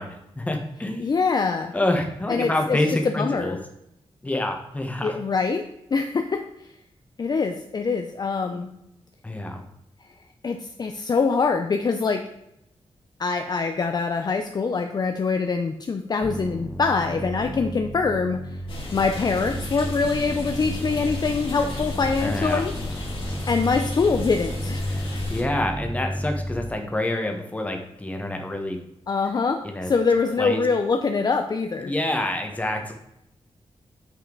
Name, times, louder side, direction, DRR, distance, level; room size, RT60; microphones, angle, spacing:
voice 1, 0.0-1.2 1.7-3.6 4.2-5.2 9.2-9.6 22.2-22.6 24.9-28.8 29.6-29.9 30.4-30.6 31.8-32.9, left 1 dB, 15° left, 3 dB, 1.3 m, -27 dB
voice 2, 1.0-1.7 2.3-2.8 3.0-3.6 5.0-5.6 5.9-6.4 7.2-8.7 10.4-12.2 13.2-18.4 18.9-22.7 23.5-24.9 29.1-31.9, left 4 dB, 40° left, 5 dB, 0.5 m, -24 dB
sound 1, 16.2-26.7, equal, 5° right, 0.5 m, -33 dB
sound 2, 18.7-25.4, left 2 dB, 55° left, 2.5 m, -34 dB
9.0 x 5.6 x 3.9 m, 0.82 s
wide cardioid pair, 150°, 11 cm